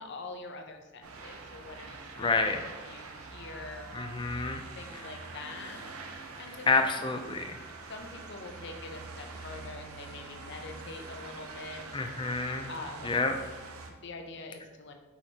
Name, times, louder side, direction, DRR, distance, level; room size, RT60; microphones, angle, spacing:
voice 1, 0.0-3.9 4.2-4.3 4.8-5.8 6.4-6.9 7.9-11.8 12.2-12.3 12.7-13.2 14.0-14.9, left 3 dB, 50° left, 4 dB, 0.7 m, -44 dB
sound 1, 1.0-13.9, right 3 dB, 80° right, 0.7 m, -45 dB
voice 2, 2.2-2.6 3.9-4.6 6.7-7.6 11.9-12.7 13.0-13.4, left 3 dB, 20° left, 6 dB, 0.4 m, -28 dB
7.1 x 5.0 x 2.9 m, 1.2 s
head